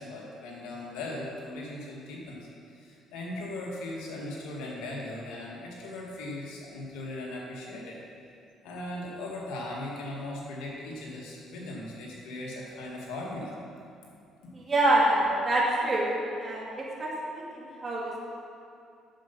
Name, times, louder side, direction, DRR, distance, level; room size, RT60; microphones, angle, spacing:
voice 1, 0.0-2.4 2.7-8.0 8.6-13.5, left 1 dB, 90° left, -3 dB, 2.1 m, -38 dB
voice 2, 14.5-16.1 16.4-18.2, right 1 dB, 30° right, -5 dB, 2.3 m, -26 dB
8.7 x 7.0 x 5.5 m, 2.5 s
cardioid pair, 95°, 0 cm